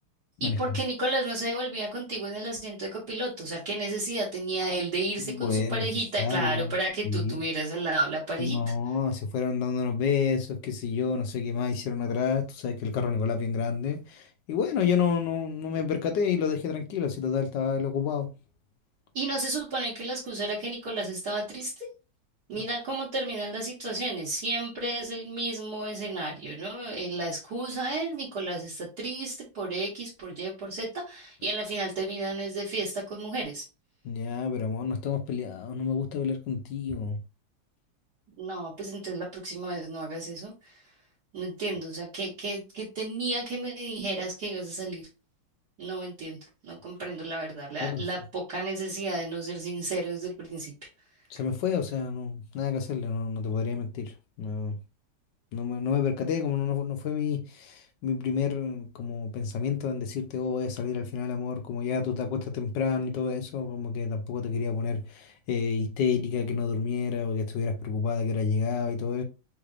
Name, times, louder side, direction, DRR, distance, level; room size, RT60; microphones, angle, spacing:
voice 1, 0.4-8.6 19.1-21.9 22.5-33.6 38.4-40.7 41.3-45.1 45.8-46.4 46.6-50.7, right 2 dB, 50° right, 1.5 m, -32 dB
voice 2, 5.2-5.9 6.2-6.7 7.0-7.4 8.4-18.3 34.0-37.2 47.8-48.0 51.3-54.1 54.4-54.8 55.5-69.2, left 6 dB, 70° left, 1.1 m, -29 dB
3.8 x 3.2 x 2.4 m
omnidirectional pair, 2.4 m